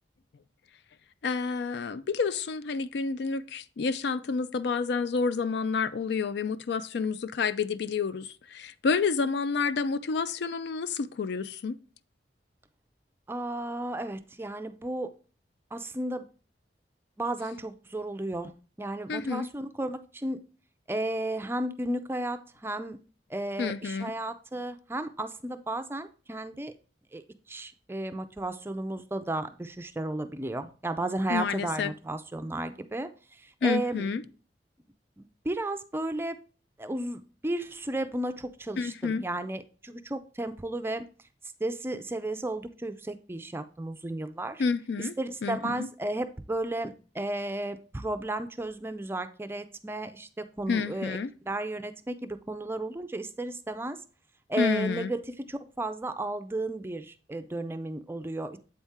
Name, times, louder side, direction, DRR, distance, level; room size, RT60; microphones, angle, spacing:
voice 1, 1.2-11.8 19.1-19.5 23.6-24.1 31.3-31.9 33.6-34.2 38.8-39.2 44.6-45.1 45.4-45.9 50.7-51.3 54.6-55.1, left 5 dB, 65° left, 0.4 m, -29 dB
voice 2, 13.3-15.1 15.7-16.2 17.2-18.5 18.8-20.4 20.9-23.0 23.3-26.7 27.1-27.2 27.5-33.1 33.4-34.1 35.2-36.4 36.8-41.0 41.6-44.6 45.2-51.2 51.5-54.0 54.5-58.6, right 1 dB, 15° right, 0.4 m, -33 dB
8.0 x 4.2 x 3.5 m
head